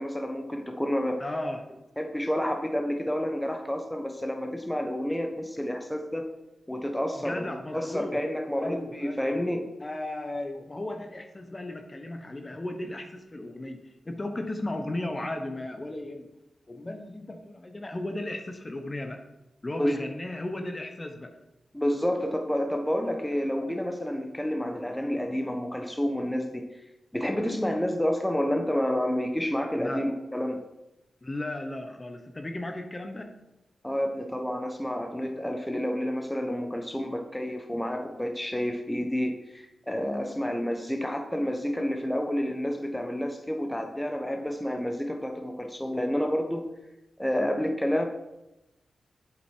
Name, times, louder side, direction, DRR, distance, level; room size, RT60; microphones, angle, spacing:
voice 1, 0.0-1.2 2.0-6.2 6.7-9.7 19.8-20.0 21.7-26.7 27.1-30.6 33.8-46.7 47.2-48.1, equal, 5° left, 4 dB, 1.1 m, -29 dB
voice 2, 1.2-1.6 7.2-8.2 8.6-9.2 9.8-13.8 14.0-16.3 16.7-19.2 19.6-21.3 29.7-30.1 31.2-33.4, left 1 dB, 30° left, 5 dB, 1.1 m, -35 dB
7.9 x 7.7 x 4.6 m, 0.95 s
cardioid pair, 65°, 0 cm